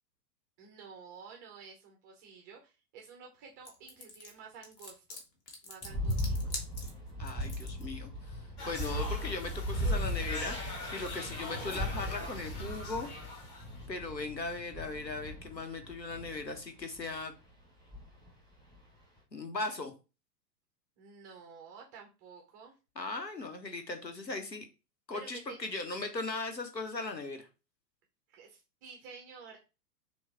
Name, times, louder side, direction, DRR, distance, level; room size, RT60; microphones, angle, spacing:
voice 1, 0.6-5.2 5.6-6.6 21.0-22.8 25.1-25.6 28.3-29.6, right 5 dB, 15° right, 0 dB, 0.4 m, -51 dB
sound 1, 3.7-7.8, left 2 dB, 45° left, 1.5 m, -44 dB
sound 2, 5.8-17.2 17.9-18.3 18.7-18.8, equal, 10° left, 1.1 m, -37 dB
voice 2, 7.2-13.1 13.9-17.3 19.3-19.9 23.0-24.7 25.1-27.5, left 3 dB, 90° left, 7 dB, 1.2 m, -38 dB
sound 3, 8.6-13.8, left 2 dB, 25° left, 1.1 m, -42 dB
6.2 x 2.4 x 3.5 m, 0.29 s
figure-of-eight pair, 100°, 49 cm